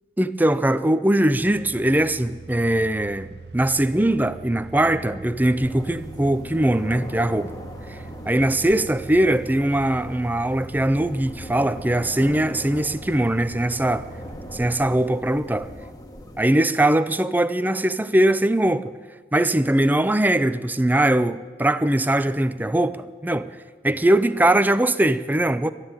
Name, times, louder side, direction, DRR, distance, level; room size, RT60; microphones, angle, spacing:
voice 1, 0.2-7.5 7.9-14.1 14.5-15.7 16.4-18.9 19.3-23.5 23.8-25.7, right 1 dB, 10° right, 0.5 m, -21 dB
sound 1, 1.4-15.0, right 4 dB, 65° right, 0.6 m, -42 dB
sound 2, 5.6-16.5, equal, 20° left, 1.2 m, -40 dB
13.0 x 11.5 x 9.0 m
head